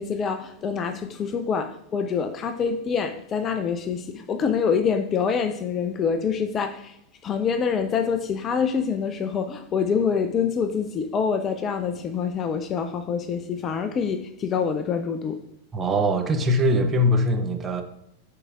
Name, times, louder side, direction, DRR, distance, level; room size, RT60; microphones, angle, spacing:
voice 1, 0.0-7.0 7.2-15.4, left 6 dB, 25° left, 0.4 m, -26 dB
voice 2, 15.7-17.8, equal, 20° right, 0.8 m, -22 dB
10.5 x 4.8 x 2.5 m
figure-of-eight pair, 90°, 0 cm